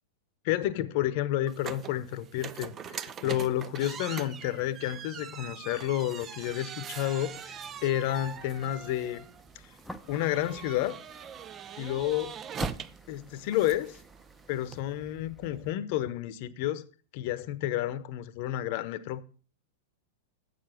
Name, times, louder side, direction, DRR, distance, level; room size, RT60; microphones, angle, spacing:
voice 1, 0.4-9.3 9.6-9.7 10.1-11.0 11.8-12.3 13.1-14.0 14.5-16.8 17.1-19.2, left 13 dB, 55° left, 0.9 m, -30 dB
sound 1, 1.5-14.8, right 8 dB, 30° right, 0.5 m, -43 dB
sound 2, 7.2-15.7, right 1 dB, ahead, 0.8 m, -46 dB
7.9 x 7.0 x 7.7 m
hypercardioid pair, 110°, 0 cm